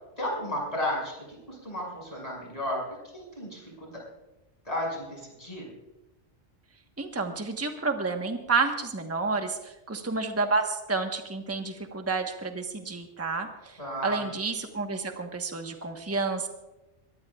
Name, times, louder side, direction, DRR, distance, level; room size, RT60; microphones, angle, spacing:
voice 1, 0.2-2.8 3.1-4.0 4.6-5.7 13.8-14.3, left 1 dB, 35° left, -2 dB, 6.1 m, -33 dB
voice 2, 7.0-16.5, right 4 dB, 15° right, 4 dB, 1.2 m, -30 dB
23.0 x 18.5 x 2.4 m, 1.0 s
omnidirectional pair, 1.2 m